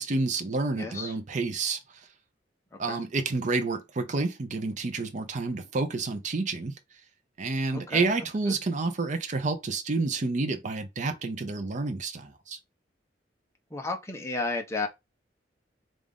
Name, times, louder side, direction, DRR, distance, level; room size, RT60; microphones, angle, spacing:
voice 1, 0.0-1.8 2.8-6.7 7.4-12.6, right 3 dB, 45° right, 0.6 m, -29 dB
voice 2, 0.8-1.1 2.7-3.0 7.7-8.1 8.5-8.6 13.7-14.9, left 3 dB, 15° left, 0.8 m, -33 dB
3.6 x 2.5 x 3.5 m
head